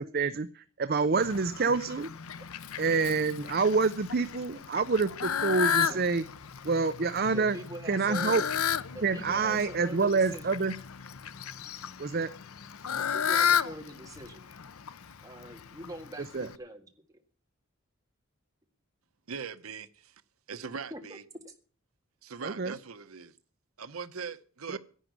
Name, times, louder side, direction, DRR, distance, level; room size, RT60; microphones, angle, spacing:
voice 1, 0.0-2.1 2.8-6.2 6.6-7.6 7.9-8.4 9.0-10.7 12.0-12.3 16.3-16.5 22.4-22.7 24.7-24.8, right 4 dB, 45° right, 0.6 m, -27 dB
Fowl, 1.2-16.6, left 8 dB, 85° left, 0.7 m, -33 dB
voice 2, 6.9-8.5 8.9-10.6 12.9-14.5 15.2-16.9 20.9-21.2 21.4-21.5, right 1 dB, 15° right, 1.8 m, -44 dB
voice 3, 19.3-20.1 20.5-21.2 22.2-23.3 23.8-24.8, right 5 dB, 85° right, 0.9 m, -40 dB
11.0 x 9.0 x 9.5 m
head